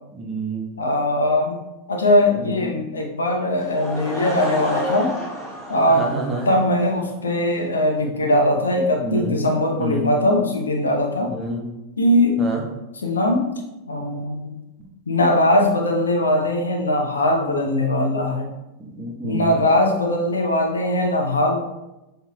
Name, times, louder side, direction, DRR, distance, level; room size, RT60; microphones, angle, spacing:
voice 1, 0.1-0.7 2.3-2.7 5.9-6.5 9.0-9.3 9.8-10.1 11.2-11.6 12.4-12.6 18.8-19.6, right 2 dB, 15° right, -1 dB, 1.1 m, -28 dB
voice 2, 0.8-1.6 1.9-5.1 5.7-6.1 6.5-11.3 12.0-12.4 13.0-13.5 13.9-14.5 15.1-18.5 19.2-21.6, left 1 dB, 70° left, 2 dB, 0.8 m, -20 dB
Laughter / Crowd, 3.5-7.1, equal, 5° left, 1.5 m, -31 dB
7.1 x 3.2 x 2.3 m, 0.97 s
figure-of-eight pair, 90°, 0 cm